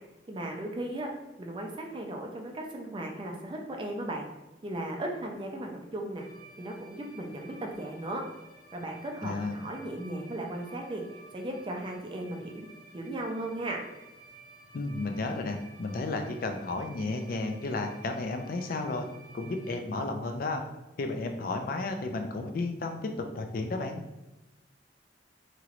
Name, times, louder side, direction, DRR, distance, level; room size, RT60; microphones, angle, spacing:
voice 1, 0.3-1.1 1.4-4.3 4.6-6.3 6.6-8.3 8.7-12.7 12.9-13.8, right 1 dB, 25° right, 1 dB, 0.4 m, -36 dB
sound 1, 6.1-19.7, right 2 dB, 70° left, 1.2 m, -53 dB
voice 2, 9.2-9.6 14.7-19.1 19.3-20.6 21.0-24.0, left 3 dB, 50° left, 5 dB, 0.3 m, -33 dB
3.0 x 3.0 x 2.4 m, 1.0 s
head